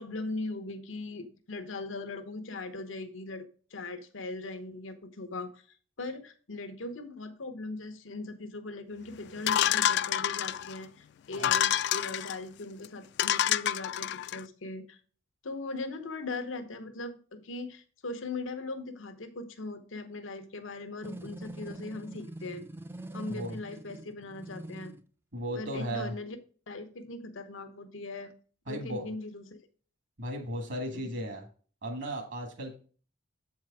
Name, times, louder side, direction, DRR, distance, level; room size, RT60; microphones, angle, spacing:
voice 1, 0.0-3.5 3.7-5.6 6.0-15.0 15.4-22.6 23.1-24.9 25.5-26.4 26.7-28.3 28.7-29.7 30.9-31.1, left 2 dB, 90° left, 8 dB, 0.9 m, -39 dB
sound 1, 9.5-10.8 11.3-12.4 12.8-12.9 13.2-14.4, left 11 dB, 60° left, 0.3 m, -28 dB
sound 2, 21.0-25.0, right 1 dB, 10° right, 0.4 m, -43 dB
voice 2, 23.3-23.6 25.3-26.1 28.7-29.1 30.2-31.4 31.8-32.7, equal, 65° right, 2 dB, 1.7 m, -35 dB
7.6 x 4.7 x 4.8 m, 0.41 s
head